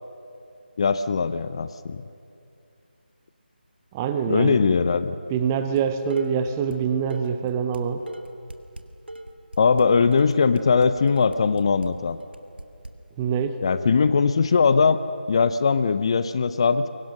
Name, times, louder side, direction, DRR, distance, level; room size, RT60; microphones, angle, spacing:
voice 1, 0.8-2.0 4.3-5.2 9.6-12.2 13.6-15.0 15.3-16.9, left 5 dB, 30° left, 13 dB, 0.6 m, -20 dB
voice 2, 3.9-4.6 5.3-8.0 13.2-13.6, right 7 dB, 15° right, 10 dB, 0.7 m, -25 dB
Dishes pots and pans, 5.8-6.8 7.1-12.9, right 1 dB, 80° right, 2.0 m, -39 dB
28.0 x 23.5 x 6.6 m, 2.5 s
figure-of-eight pair, 160°, 6 cm